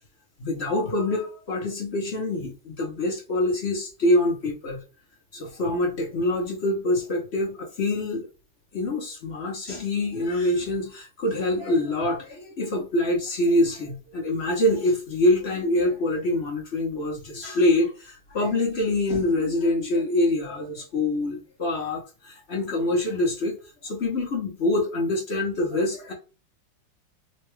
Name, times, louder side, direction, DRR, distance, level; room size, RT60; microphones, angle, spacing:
voice 1, 0.4-4.8 5.3-8.3 8.7-23.6 23.8-26.1, left 1 dB, 55° left, 0.7 m, -25 dB
4.2 x 2.2 x 3.1 m
omnidirectional pair, 2.4 m